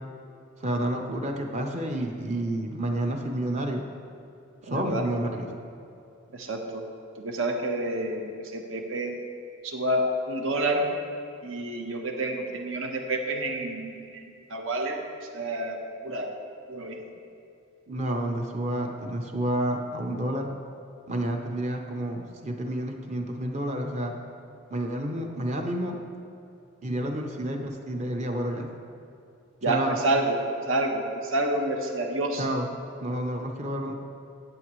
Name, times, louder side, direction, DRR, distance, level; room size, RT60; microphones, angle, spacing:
voice 1, 0.6-3.9 4.6-5.5 17.9-20.5 21.1-24.2 24.7-26.0 26.8-28.7 29.7-29.9 32.4-32.7 33.0-33.9, right 1 dB, 35° right, 3 dB, 0.7 m, -30 dB
voice 2, 4.7-5.1 6.3-6.8 7.2-9.2 9.6-10.9 11.4-15.0 15.3-16.3 16.7-17.0 29.6-30.4 30.7-32.5, right 1 dB, 75° right, 3 dB, 1.1 m, -29 dB
14.5 x 8.0 x 3.1 m, 2.7 s
head